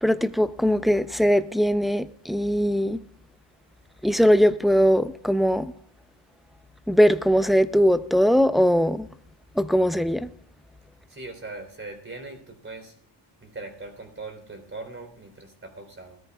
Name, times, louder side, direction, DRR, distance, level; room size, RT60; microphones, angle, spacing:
voice 1, 0.0-3.0 4.0-5.7 6.9-9.1 9.6-10.3, equal, ahead, 0.7 m, -20 dB
voice 2, 11.1-13.0 13.4-16.2, right 3 dB, 30° right, 3.8 m, -40 dB
20.5 x 14.0 x 2.4 m
cardioid pair, 90°, 43 cm